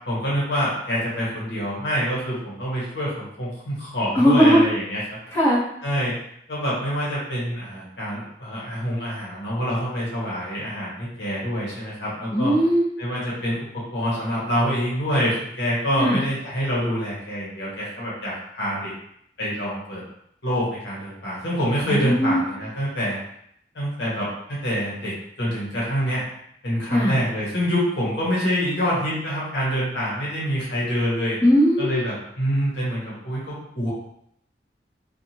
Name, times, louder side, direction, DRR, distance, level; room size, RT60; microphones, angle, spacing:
voice 1, 0.1-5.2 5.8-6.1 6.5-12.5 13.0-18.9 19.4-20.0 20.4-23.2 23.7-26.2 26.6-31.4 31.8-33.9, equal, 70° left, -6 dB, 1.1 m, -26 dB
voice 2, 4.1-4.6 5.3-5.6 12.3-12.8 16.0-16.2 21.9-22.4 26.9-27.2 31.4-32.0, equal, 15° left, -10 dB, 1.0 m, -18 dB
2.6 x 2.4 x 2.9 m, 0.72 s
head